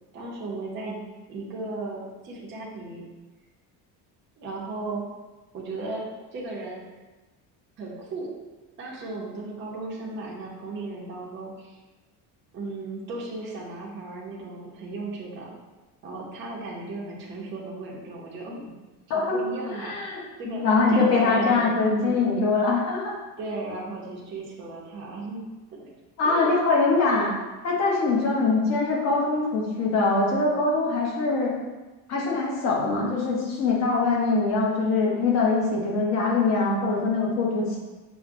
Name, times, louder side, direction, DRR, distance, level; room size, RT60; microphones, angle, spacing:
voice 1, 0.1-3.0 4.4-5.0 5.5-6.0 6.3-6.8 7.8-8.3 8.8-11.8 12.5-15.5 16.0-18.6 19.1-20.0 20.4-22.2 23.4-25.5 25.8-25.9 26.2-26.5, right 2 dB, 30° right, -4 dB, 0.6 m, -35 dB
voice 2, 19.1-19.4 19.7-23.1 26.2-27.3 27.6-31.5 32.1-37.8, left 3 dB, 45° left, -3 dB, 0.9 m, -23 dB
5.8 x 2.1 x 2.5 m, 1.2 s
cardioid pair, 170°, 37 cm